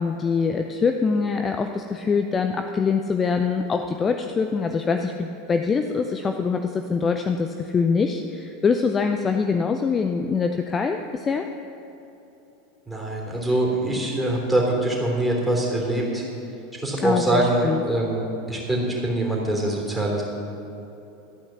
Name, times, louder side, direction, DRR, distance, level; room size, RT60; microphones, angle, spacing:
voice 1, 0.0-11.5 17.0-17.8, left 5 dB, 25° left, 6 dB, 0.5 m, -24 dB
voice 2, 12.9-16.2 16.8-20.2, right 1 dB, 5° right, -2 dB, 3.1 m, -24 dB
13.0 x 8.7 x 5.9 m, 3.0 s
figure-of-eight pair, 80°, 0 cm